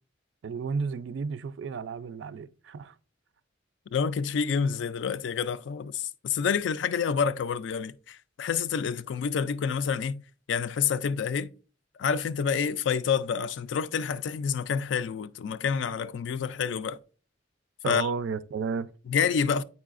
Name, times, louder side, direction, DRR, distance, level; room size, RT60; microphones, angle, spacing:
voice 1, 0.4-2.9 17.8-18.9, right 5 dB, 80° right, 0.4 m, -32 dB
voice 2, 3.9-10.2 10.5-11.5 12.0-17.0 17.9-18.1 19.1-19.6, left 6 dB, 80° left, 0.3 m, -28 dB
8.2 x 4.7 x 2.4 m
head